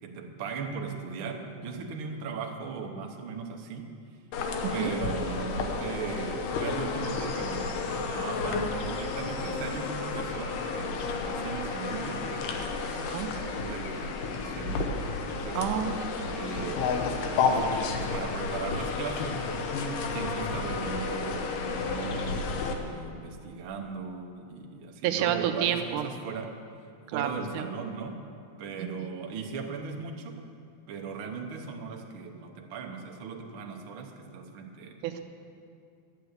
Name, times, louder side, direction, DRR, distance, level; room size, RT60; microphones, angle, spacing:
voice 1, 0.0-4.0 4.7-15.6 16.3-17.2 17.4-19.4 20.0-26.6 27.1-28.3 28.6-30.5 30.9-35.0, right 5 dB, 60° right, 2 dB, 1.4 m, -38 dB
sound 1, 4.3-22.7, left 4 dB, 85° left, 2.5 m, -31 dB
voice 2, 15.5-16.7 25.0-26.0 27.1-27.3 27.5-27.7 29.0-29.1 35.0-35.2, right 10 dB, 85° right, 7 dB, 2.1 m, -30 dB
11.5 x 8.9 x 8.0 m, 2.5 s
omnidirectional pair, 3.6 m